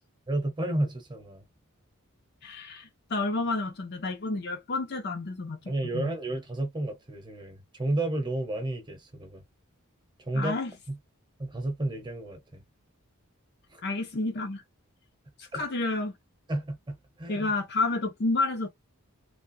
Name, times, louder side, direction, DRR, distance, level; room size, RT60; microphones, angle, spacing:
voice 1, 0.3-1.4 5.7-9.4 10.2-10.6 10.9-11.0 11.4-12.6 13.7-13.8 15.5-15.6 16.5-17.5, right 1 dB, 20° right, 0.9 m, -32 dB
voice 2, 2.4-5.6 5.9-6.1 10.3-10.7 13.8-14.6 15.4-16.1 17.3-18.7, left 3 dB, 50° left, 0.6 m, -30 dB
3.4 x 2.2 x 2.6 m
head